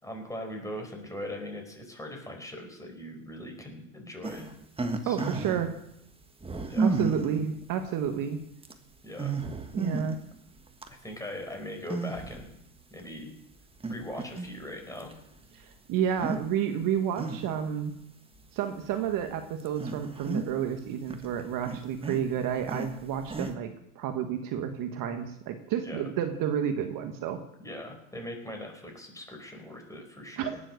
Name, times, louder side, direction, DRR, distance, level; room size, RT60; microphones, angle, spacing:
voice 1, 0.0-4.5 5.0-5.4 6.7-7.0 9.0-9.4 10.9-12.6 12.9-13.3 13.9-15.1 25.8-26.1 27.6-30.6, left 1 dB, 5° left, 2 dB, 4.7 m, -40 dB
sound 1, 4.2-5.7 6.4-7.4 8.1-8.2 8.6-8.7 9.1-10.2 10.6-10.9 11.9-12.5 13.0-13.1 13.8-14.6 15.0-15.1 16.1-16.4 16.8-17.7 18.4-18.5 19.1-19.2 19.6-20.8 21.0-23.5, right 3 dB, 10° right, 1.6 m, -32 dB
voice 2, 5.0-5.7 6.8-8.4 9.7-10.2 15.5-18.0 18.5-27.4 30.4-30.6, right 8 dB, 45° right, 7 dB, 1.5 m, -30 dB
18.0 x 7.7 x 6.6 m, 0.81 s
hypercardioid pair, 90°, 45 cm